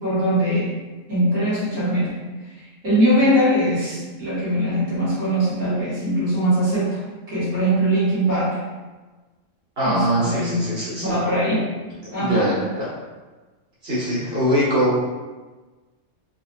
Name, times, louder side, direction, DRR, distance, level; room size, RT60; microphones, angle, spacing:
voice 1, 0.0-0.8 1.1-2.2 2.8-7.0 7.3-8.6 9.8-10.6 11.0-11.7 12.1-12.5, equal, 80° right, -10 dB, 1.9 m, -21 dB
voice 2, 9.8-11.1 12.1-12.9 13.8-15.0, equal, 55° right, -8 dB, 1.3 m, -22 dB
4.2 x 2.3 x 2.5 m, 1.3 s
omnidirectional pair, 1.3 m